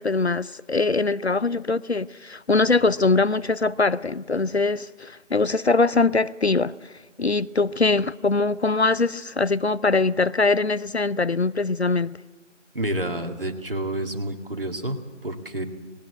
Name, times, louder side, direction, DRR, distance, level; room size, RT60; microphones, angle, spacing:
voice 1, 0.0-6.9 7.2-12.2, left 3 dB, 60° left, 0.6 m, -22 dB
voice 2, 12.7-15.6, right 1 dB, 45° right, 2.1 m, -29 dB
19.5 x 18.0 x 8.7 m
figure-of-eight pair, 170°, 37 cm